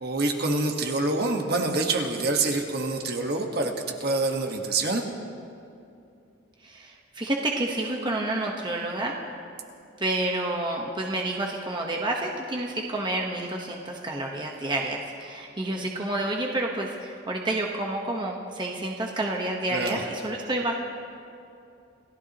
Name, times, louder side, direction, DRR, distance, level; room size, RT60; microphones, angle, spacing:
voice 1, 0.0-5.0 19.7-20.0, right 2 dB, 55° right, 3 dB, 1.5 m, -26 dB
voice 2, 6.6-9.1 10.0-20.7, right 2 dB, 25° right, 0 dB, 1.2 m, -29 dB
28.0 x 16.0 x 3.0 m, 2.6 s
head